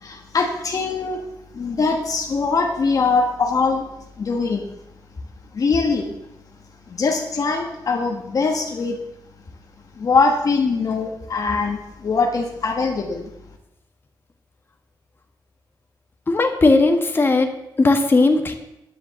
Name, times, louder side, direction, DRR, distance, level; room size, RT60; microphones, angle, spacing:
voice 1, 0.0-1.2 1.5-3.8 4.2-4.7 5.5-6.1 6.9-9.0 10.0-13.3, left 4 dB, 50° left, 2 dB, 1.3 m, -22 dB
voice 2, 16.3-17.5 17.8-18.5, left 3 dB, 30° left, 3 dB, 1.5 m, -17 dB
10.0 x 7.9 x 7.4 m, 0.89 s
wide cardioid pair, 125°, 8 cm